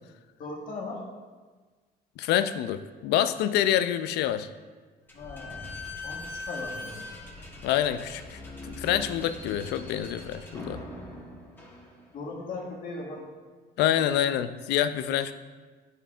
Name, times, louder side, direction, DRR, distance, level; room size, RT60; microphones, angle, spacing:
voice 1, 0.4-1.0 5.1-5.7 6.0-7.0 12.1-13.3, left 3 dB, 55° left, -1 dB, 1.5 m, -38 dB
voice 2, 2.2-4.5 7.6-8.2 8.7-10.8 13.8-15.3, left 11 dB, 80° left, 12 dB, 0.4 m, -26 dB
Slam / Squeak, 5.1-12.4, left 2 dB, 10° left, 1.2 m, -41 dB
9.0 x 5.3 x 2.5 m, 1.4 s
cardioid pair, 110°, 17 cm